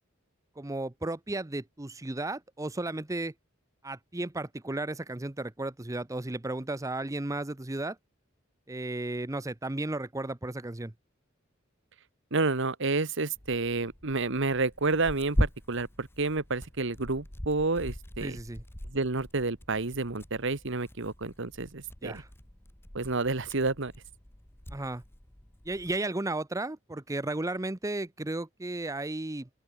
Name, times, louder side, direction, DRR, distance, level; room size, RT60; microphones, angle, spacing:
voice 1, 0.6-3.3 3.8-8.0 8.7-10.9 18.2-18.6 22.0-22.3 24.7-25.0 25.7-29.5, right 2 dB, 15° right, 0.7 m, -34 dB
voice 2, 12.3-18.4 18.9-22.2 22.9-23.9, right 3 dB, 65° right, 1.4 m, -30 dB
Tearing, 13.3-26.0, equal, 10° left, 1.1 m, -39 dB
open air
head